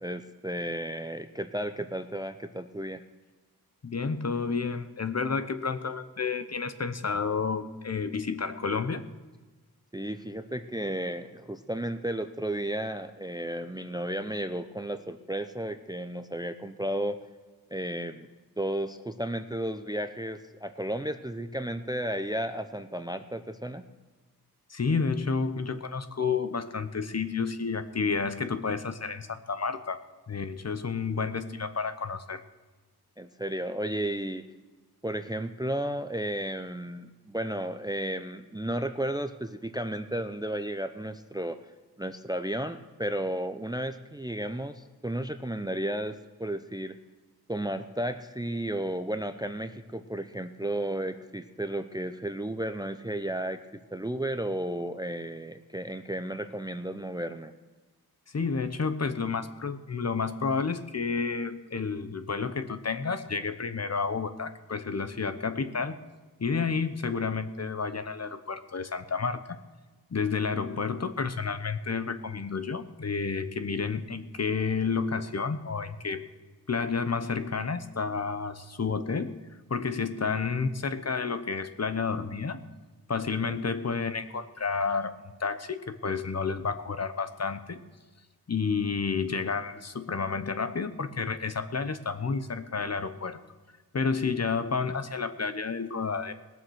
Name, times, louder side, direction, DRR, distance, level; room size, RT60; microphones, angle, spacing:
voice 1, 0.0-3.0 9.9-17.2 17.7-18.3 18.6-23.8 33.2-34.4 35.0-41.6 42.0-47.0 47.5-57.5 83.5-83.6, right 1 dB, 10° right, 10 dB, 0.5 m, -33 dB
voice 2, 3.8-9.0 24.7-30.0 30.3-32.4 58.3-66.0 66.4-69.6 70.1-76.3 76.7-79.4 79.7-82.6 83.1-85.1 85.4-87.8 88.5-93.4 93.9-96.3, left 5 dB, 40° left, 10 dB, 0.9 m, -30 dB
19.0 x 7.3 x 6.3 m, 1.3 s
wide cardioid pair, 80°, 38 cm